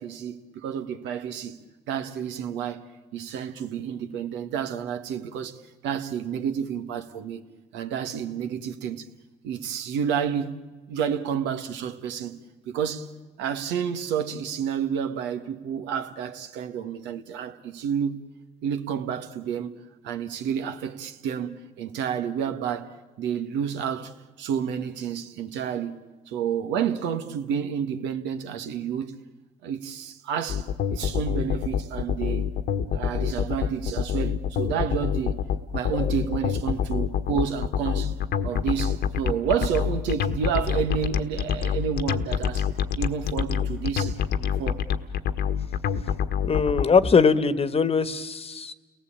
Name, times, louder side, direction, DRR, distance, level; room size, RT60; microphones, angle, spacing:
voice 1, 0.0-1.6 1.9-5.6 5.8-7.4 7.7-9.1 9.4-10.6 10.9-12.4 12.7-13.1 13.4-18.2 18.6-29.1 29.6-32.5 32.9-35.4 35.7-38.1 38.4-42.7 43.0-44.8, right 8 dB, 80° right, 1.7 m, -30 dB
sound 1, 30.5-46.8, left 8 dB, 65° left, 1.5 m, -26 dB
voice 2, 46.5-48.7, left 5 dB, 35° left, 1.4 m, -21 dB
30.0 x 19.0 x 8.8 m
supercardioid pair, 85°, 18 cm